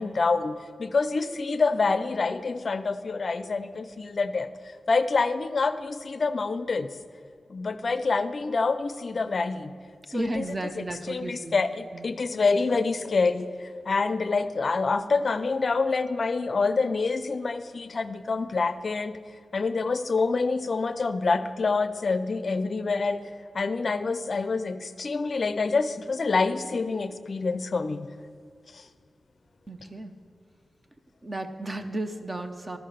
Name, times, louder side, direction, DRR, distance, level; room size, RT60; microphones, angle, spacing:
voice 1, 0.0-4.5 4.9-7.0 7.5-9.7 10.1-10.4 10.8-19.2 19.5-28.1 28.7-28.8, left 4 dB, 55° left, 12 dB, 0.4 m, -27 dB
voice 2, 10.1-11.7 11.9-12.1 29.7-30.1 31.2-32.8, right 1 dB, 30° right, 7 dB, 0.7 m, -33 dB
13.0 x 5.7 x 6.5 m, 2.3 s
wide cardioid pair, 90°, 0 cm